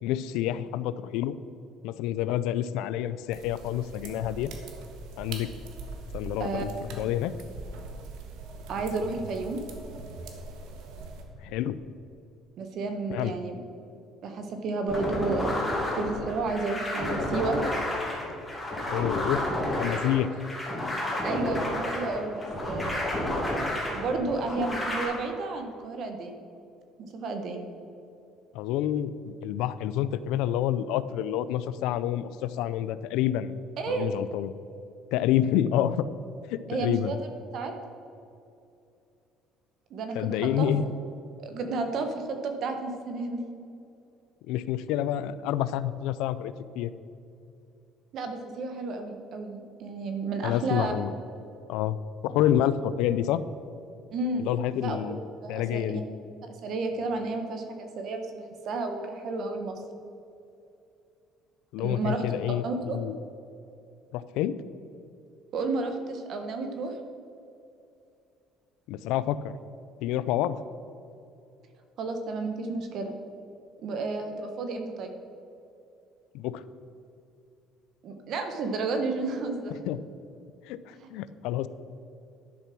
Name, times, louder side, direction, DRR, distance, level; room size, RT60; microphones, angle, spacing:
voice 1, 0.0-1.4 1.8-4.5 5.2-5.5 6.1-6.7 7.0-7.3 11.4-11.8 13.1-13.3 18.9-20.3 28.5-33.5 33.9-34.5 35.1-36.0 36.5-37.1 40.2-41.0 44.5-46.9 50.4-51.1 51.7-52.0 52.2-53.4 54.4-55.2 55.5-56.0 61.7-63.2 64.1-64.6 68.9-69.5 70.0-70.6 76.3-76.6 79.9-80.0 80.7-81.7, left 11 dB, 85° left, 15 dB, 0.5 m, -28 dB
sound 1, 3.3-11.2, right 3 dB, 80° right, 1.5 m, -42 dB
voice 2, 8.7-9.6 12.6-13.6 14.2-17.6 19.3-19.4 21.2-23.0 23.9-26.4 27.0-27.7 33.8-34.1 36.7-37.2 37.5-37.7 39.9-40.3 40.6-40.7 41.4-43.4 48.1-50.9 54.1-54.5 54.8-55.0 55.4-56.0 56.6-59.8 61.8-63.0 65.5-66.9 72.0-73.1 73.8-75.1 78.0-79.8 81.0-81.1, right 3 dB, 50° right, 5 dB, 1.3 m, -32 dB
sound 2, 14.9-25.0, left 1 dB, 5° left, 2.7 m, -31 dB
11.0 x 6.9 x 6.1 m, 2.6 s
cardioid pair, 160°, 0 cm